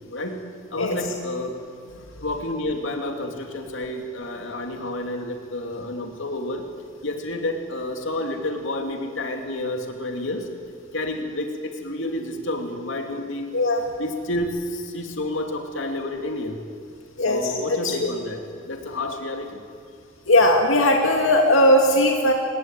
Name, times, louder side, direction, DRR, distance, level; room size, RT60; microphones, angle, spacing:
voice 1, 0.1-0.4 0.7-1.5 2.2-6.6 7.0-10.5 10.9-13.5 14.0-16.6 17.3-19.6, left 1 dB, 70° left, 3 dB, 2.8 m, -30 dB
voice 2, 17.2-17.5 17.8-17.9 20.3-22.3, left 1 dB, 85° left, 1 dB, 2.4 m, -18 dB
25.5 x 20.5 x 9.1 m, 2.2 s
head